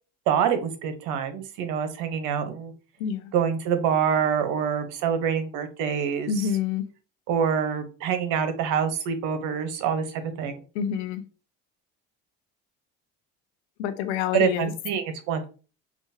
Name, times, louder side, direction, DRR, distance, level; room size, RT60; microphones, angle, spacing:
voice 1, 0.3-2.7 3.3-6.3 7.3-10.6 14.3-15.5, right 7 dB, 75° right, 9 dB, 0.8 m, -26 dB
voice 2, 3.0-3.3 6.3-6.8 10.7-11.2 13.8-14.7, left 8 dB, 90° left, 11 dB, 0.6 m, -27 dB
5.0 x 2.3 x 2.7 m, 0.36 s
supercardioid pair, 80°, 33 cm